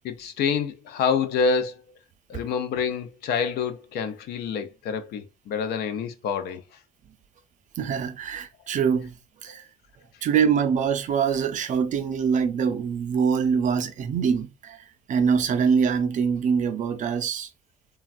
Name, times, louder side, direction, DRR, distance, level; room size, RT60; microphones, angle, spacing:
voice 1, 0.0-1.8 2.3-6.6 9.5-9.6, left 6 dB, 70° left, 0.5 m, -27 dB
voice 2, 7.8-9.6 10.2-17.5, right 6 dB, 50° right, 0.5 m, -24 dB
3.3 x 2.2 x 2.4 m
cardioid pair, 110°, 17 cm